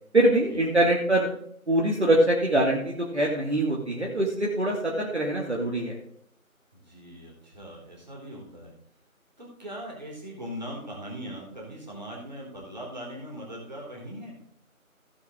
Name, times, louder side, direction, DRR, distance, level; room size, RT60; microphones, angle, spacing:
voice 1, 0.1-1.3 1.7-6.0, right 1 dB, 50° right, -2 dB, 2.4 m, -23 dB
voice 2, 6.7-8.7 9.4-14.4, equal, 30° right, -2 dB, 3.5 m, -40 dB
16.0 x 7.6 x 3.8 m, 0.66 s
figure-of-eight pair, 175°, 43 cm